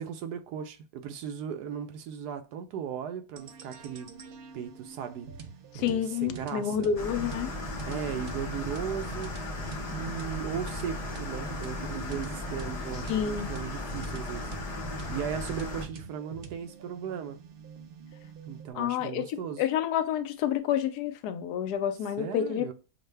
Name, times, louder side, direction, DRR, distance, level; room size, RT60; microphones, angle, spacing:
voice 1, 0.0-4.1 4.5-5.3 5.7-6.9 7.8-9.3 9.6-14.5 15.1-17.4 18.5-19.6 22.2-22.7, right 8 dB, 90° right, 1.2 m, -37 dB
sound 1, 3.4-18.7, right 6 dB, 75° right, 0.5 m, -45 dB
voice 2, 5.7-7.5 13.1-13.5 18.7-22.6, left 9 dB, 90° left, 1.1 m, -29 dB
sound 2, 7.0-15.9, left 2 dB, 40° left, 0.5 m, -36 dB
6.4 x 2.1 x 3.3 m
omnidirectional pair, 1.7 m